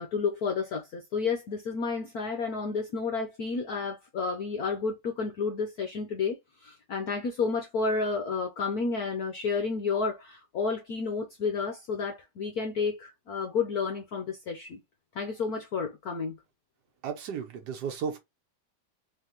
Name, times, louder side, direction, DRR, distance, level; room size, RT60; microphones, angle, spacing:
voice 1, 0.0-14.8 15.1-16.4, left 4 dB, 60° left, 1.0 m, -31 dB
voice 2, 17.0-18.2, right 6 dB, 55° right, 1.5 m, -34 dB
4.1 x 3.4 x 2.9 m
omnidirectional pair, 2.4 m